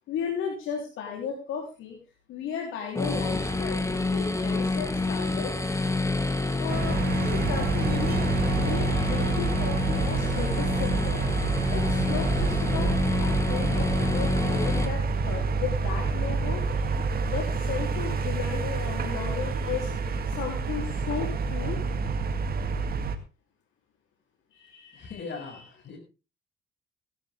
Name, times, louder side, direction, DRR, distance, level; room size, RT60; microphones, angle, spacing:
voice 1, 0.1-2.0 2.3-3.8 4.1-5.5 6.6-11.2 11.7-16.8 17.2-21.8 24.5-25.6, left 7 dB, 90° left, 0 dB, 3.5 m, -35 dB
sound 1, 2.9-14.9, left 2 dB, 15° left, 2.3 m, -28 dB
sound 2, 6.7-23.2, right 4 dB, 50° right, 2.0 m, -28 dB
voice 2, 24.9-26.0, left 4 dB, 65° left, 3 dB, 6.9 m, -39 dB
16.5 x 12.0 x 3.6 m, 0.32 s
cardioid pair, 90°, 20 cm